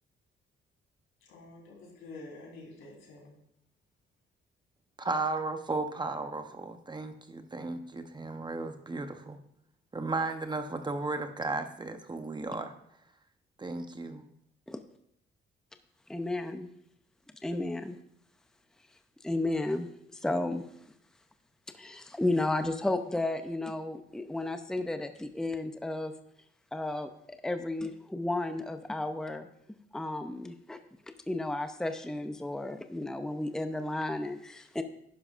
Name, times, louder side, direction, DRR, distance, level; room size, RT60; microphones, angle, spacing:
voice 1, 1.3-3.4, left 2 dB, 85° left, -2 dB, 4.0 m, -48 dB
voice 2, 5.0-9.4 9.9-12.7 13.6-14.2, right 3 dB, 20° right, 7 dB, 0.9 m, -34 dB
voice 3, 16.1-16.7 17.4-18.0 19.2-20.6 21.7-26.1 26.7-29.5 29.9-30.8 31.3-34.8, left 2 dB, 5° left, 8 dB, 0.6 m, -33 dB
11.0 x 10.5 x 2.5 m, 0.72 s
cardioid pair, 90°, 20 cm